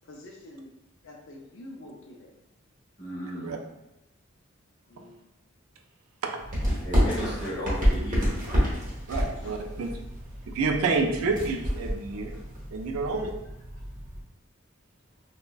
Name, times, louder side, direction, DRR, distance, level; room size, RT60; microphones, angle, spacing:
voice 1, 0.0-0.7 1.0-2.3 4.9-5.2 9.2-9.6 13.7-13.8, left 1 dB, 60° left, 0 dB, 0.4 m, -47 dB
voice 2, 3.0-3.6 6.8-8.3, equal, 15° left, -9 dB, 0.8 m, -34 dB
sound 1, 6.4-14.2, equal, 35° right, 0.9 m, -29 dB
voice 3, 9.1-9.9 10.5-12.3 12.7-13.3, right 4 dB, 85° right, 3 dB, 0.4 m, -28 dB
3.3 x 2.1 x 2.2 m, 0.94 s
head